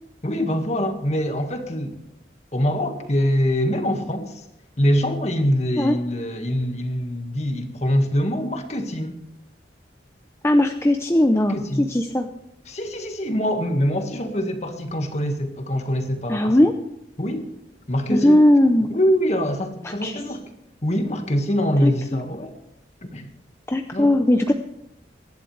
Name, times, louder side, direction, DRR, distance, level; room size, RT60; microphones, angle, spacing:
voice 1, 0.2-1.9 2.5-4.4 4.8-9.2 11.3-11.9 12.7-16.6 17.2-17.5 17.9-18.4 18.9-20.4 20.8-22.5 23.0-23.3 23.9-24.1, equal, 40° left, 5 dB, 1.7 m, -24 dB
voice 2, 10.4-12.3 16.3-16.7 18.1-18.9 19.8-20.2 21.8-21.9 23.7-24.5, left 1 dB, 15° left, 5 dB, 0.6 m, -18 dB
24.5 x 11.5 x 3.3 m, 0.80 s
head